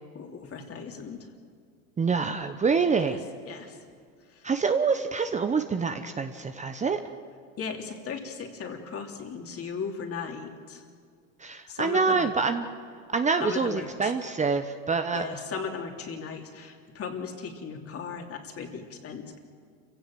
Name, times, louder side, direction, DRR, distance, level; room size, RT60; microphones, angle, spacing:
voice 1, 0.1-1.3 3.0-3.2 3.5-3.8 4.3-4.5 7.6-10.8 11.7-12.3 13.4-14.1 15.1-19.4, left 5 dB, 35° left, 4 dB, 3.1 m, -37 dB
voice 2, 2.0-3.2 4.4-7.0 11.4-12.7 13.1-15.3, right 5 dB, 20° right, 8 dB, 1.0 m, -26 dB
27.5 x 16.5 x 7.7 m, 2.1 s
hypercardioid pair, 95°, 39 cm